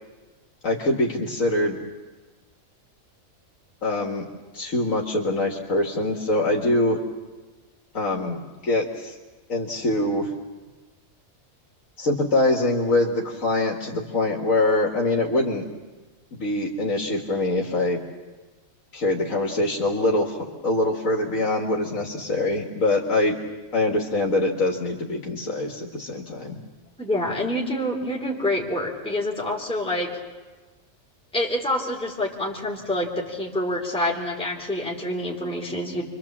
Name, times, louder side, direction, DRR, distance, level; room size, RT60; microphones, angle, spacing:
voice 1, 0.6-1.8 3.8-4.3 4.5-7.0 7.9-9.2 9.5-10.3 12.0-15.6 16.3-18.0 18.9-20.4 20.6-23.3 23.7-26.6, left 2 dB, 70° left, 0 dB, 2.2 m, -24 dB
voice 2, 27.0-30.1 31.3-36.0, left 1 dB, 5° left, -2 dB, 3.1 m, -27 dB
28.0 x 24.5 x 7.3 m, 1.3 s
omnidirectional pair, 1.4 m